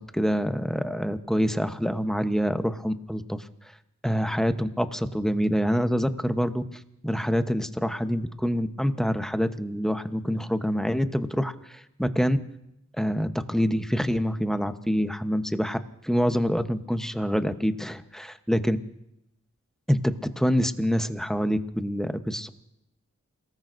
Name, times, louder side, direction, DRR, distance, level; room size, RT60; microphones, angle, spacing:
voice 1, 0.1-3.7 4.0-12.4 13.0-15.8 16.0-18.8 19.9-22.5, equal, ahead, 8 dB, 0.9 m, -26 dB
29.0 x 18.5 x 2.6 m, 0.85 s
wide cardioid pair, 65°, 30 cm